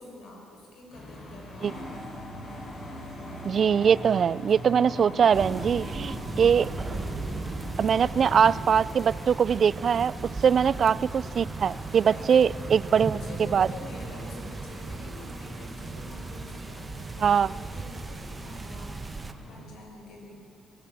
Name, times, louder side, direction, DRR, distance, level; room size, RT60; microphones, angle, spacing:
voice 1, 0.0-1.8 2.7-3.0 7.9-8.2 10.5-11.0 12.0-12.6 12.9-19.0 19.4-20.3, left 2 dB, 80° left, 0 dB, 6.1 m, -46 dB
sound 1, 0.9-19.6, equal, 55° left, 6.1 m, -42 dB
voice 2, 3.4-6.7 7.8-10.1 10.4-13.2 13.5-13.7 17.2-17.5, right 7 dB, 55° right, 20 dB, 0.4 m, -22 dB
sound 2, 5.3-19.3, right 3 dB, 25° right, 1.1 m, -37 dB
22.0 x 16.0 x 9.2 m, 2.9 s
cardioid pair, 90°, 0 cm